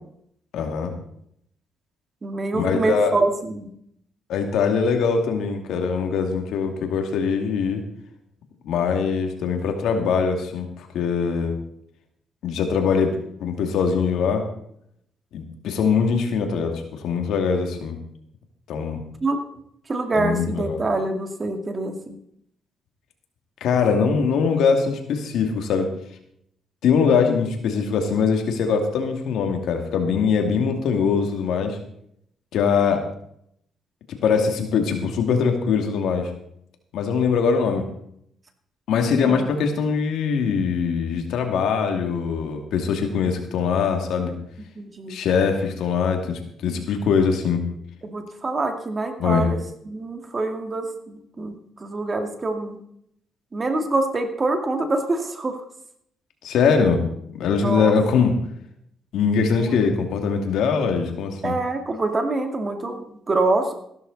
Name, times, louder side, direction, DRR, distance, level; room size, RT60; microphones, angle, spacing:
voice 1, 0.5-0.9 2.5-3.1 4.3-7.8 8.6-11.6 12.4-14.4 15.3-18.0 18.7-19.0 20.1-20.8 23.6-25.9 26.8-31.8 32.5-33.0 34.2-36.3 36.9-37.9 38.9-44.3 45.1-47.6 49.2-49.5 56.4-57.0 57.3-58.3 59.1-61.6, left 6 dB, 80° left, 4 dB, 2.5 m, -22 dB
voice 2, 2.2-3.7 19.2-19.4 19.9-22.1 39.2-39.5 44.8-45.2 46.7-46.9 48.0-49.6 49.9-52.8 53.5-55.5 57.5-58.0 59.6-59.7 61.4-63.7, right 2 dB, 30° right, 6 dB, 2.2 m, -25 dB
15.0 x 12.5 x 4.1 m, 0.71 s
cardioid pair, 90°, 0 cm